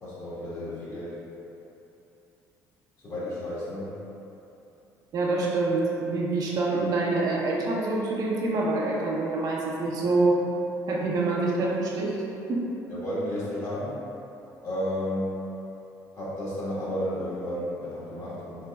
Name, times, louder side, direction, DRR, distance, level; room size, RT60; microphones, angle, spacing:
voice 1, 0.0-1.1 3.0-3.9 12.9-14.0 14.6-15.3 16.1-18.7, left 1 dB, 45° left, -9 dB, 1.4 m, -32 dB
voice 2, 5.1-10.4 10.9-12.2 12.5-12.7, right 2 dB, 55° right, -4 dB, 0.7 m, -26 dB
4.0 x 3.2 x 2.3 m, 2.9 s
cardioid pair, 85°, 7 cm